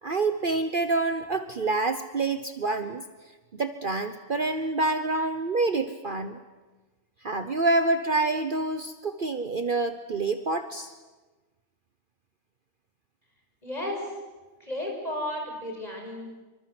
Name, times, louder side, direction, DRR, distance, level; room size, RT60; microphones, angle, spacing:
voice 1, 0.0-3.0 3.5-6.4 7.2-10.9, right 3 dB, 45° right, 9 dB, 1.2 m, -27 dB
voice 2, 13.6-14.1 14.6-16.3, left 1 dB, 30° left, 1 dB, 6.9 m, -33 dB
27.5 x 24.5 x 7.8 m, 1.2 s
omnidirectional pair, 1.3 m